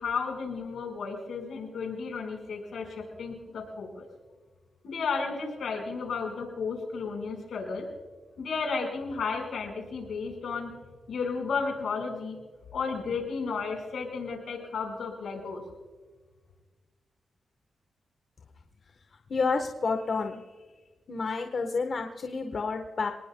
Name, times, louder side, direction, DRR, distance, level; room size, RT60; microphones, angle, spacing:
voice 1, 0.0-4.1 4.8-7.9 8.4-10.7 11.1-12.4 12.7-15.6, left 5 dB, 80° left, 2 dB, 4.9 m, -33 dB
voice 2, 19.3-20.4 21.1-23.1, left 4 dB, 55° left, 5 dB, 1.2 m, -29 dB
27.0 x 19.5 x 2.3 m, 1.4 s
wide cardioid pair, 100°, 0 cm